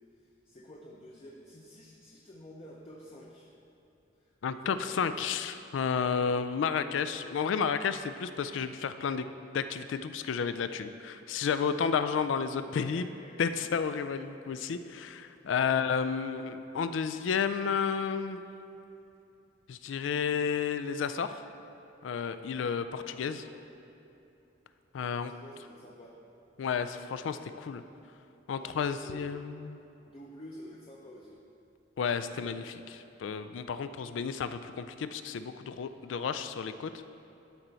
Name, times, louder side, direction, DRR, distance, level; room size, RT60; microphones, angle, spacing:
voice 1, 0.1-3.6 4.2-4.9 12.1-12.2 12.7-13.4 15.6-15.8 23.1-23.6 25.1-26.2 28.6-29.3 30.0-31.4, left 1 dB, 30° left, -2 dB, 0.6 m, -50 dB
voice 2, 4.4-9.3 9.5-13.1 13.4-18.4 19.7-21.4 22.0-23.4 24.9-25.3 26.6-27.8 28.5-29.8 32.0-36.9, left 6 dB, 75° left, 10 dB, 0.4 m, -32 dB
12.5 x 4.4 x 4.0 m, 2.9 s
head